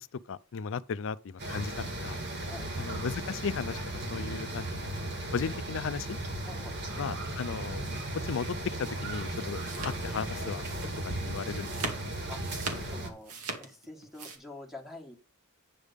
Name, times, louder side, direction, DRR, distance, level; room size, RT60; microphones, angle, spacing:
voice 1, 0.3-2.2 2.8-6.2 7.0-7.9 8.2-10.6 11.2-11.9, left 6 dB, 60° left, 0.5 m, -36 dB
sound 1, 1.4-13.1, right 1 dB, 50° right, 2.0 m, -36 dB
sound 2, 9.3-14.4, right 3 dB, 85° right, 2.1 m, -40 dB
voice 2, 12.9-15.2, left 2 dB, ahead, 1.4 m, -46 dB
9.2 x 3.5 x 6.6 m
head